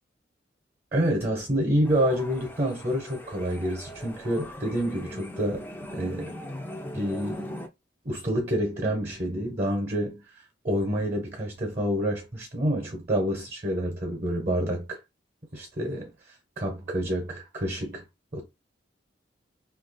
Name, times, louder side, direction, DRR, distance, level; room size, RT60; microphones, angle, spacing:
voice 1, 0.9-6.3 6.9-7.5 8.0-10.2 10.6-15.0 15.5-16.1 16.6-18.0 18.3-18.4, equal, 40° right, 1.0 m, -28 dB
sound 1, 1.8-7.7, left 1 dB, 10° left, 0.5 m, -40 dB
2.9 x 2.6 x 4.0 m
head